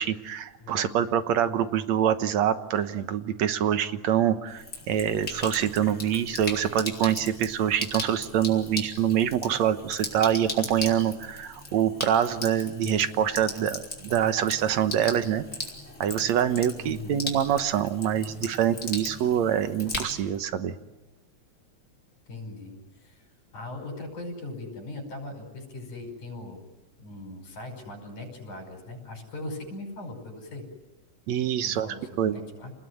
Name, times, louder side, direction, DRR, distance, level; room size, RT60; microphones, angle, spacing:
voice 1, 0.0-15.4 16.0-20.8 31.3-31.9 32.2-32.4, right 9 dB, 70° right, 10 dB, 2.4 m, -25 dB
voice 2, 0.6-1.0 16.8-17.2 22.3-22.7 23.0-23.2 23.5-26.7 27.0-30.6 31.6-32.7, left 2 dB, 80° left, 4 dB, 6.7 m, -39 dB
Sink (filling or washing), 4.5-20.4, left 2 dB, 25° left, 4.2 m, -38 dB
29.5 x 20.0 x 9.5 m, 1.1 s
omnidirectional pair, 3.4 m